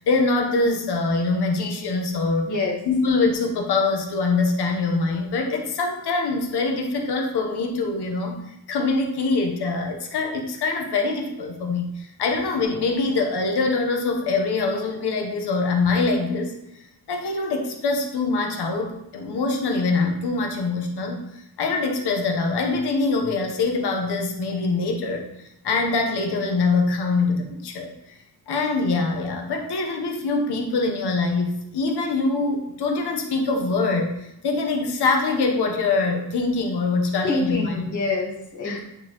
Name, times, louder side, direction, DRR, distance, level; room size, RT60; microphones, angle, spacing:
voice 1, 0.0-2.5 2.9-16.5 17.1-25.2 25.6-28.2 28.5-37.8 38.6-38.8, left 3 dB, 75° left, 2 dB, 1.1 m, -24 dB
voice 2, 2.5-2.8 37.2-38.8, left 3 dB, 50° left, -2 dB, 1.6 m, -26 dB
8.9 x 4.0 x 3.0 m, 0.84 s
wide cardioid pair, 165°, 40 cm